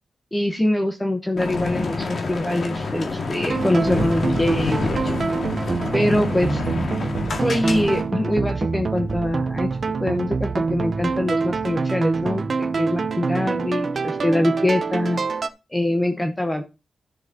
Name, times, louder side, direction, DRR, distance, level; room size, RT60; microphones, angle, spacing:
voice 1, 0.3-5.1 5.9-6.6 7.4-9.7 10.0-15.2 15.7-16.6, left 1 dB, 15° left, 5 dB, 1.0 m, -23 dB
sound 1, 1.4-8.0, left 3 dB, 60° left, 1.8 m, -27 dB
Bowed string instrument, 3.0-7.8, equal, 85° left, 6.5 m, -43 dB
sound 2, 3.5-15.5, right 4 dB, 50° right, 0.7 m, -25 dB
13.5 x 6.6 x 2.8 m, 0.28 s
wide cardioid pair, 100°, 0 cm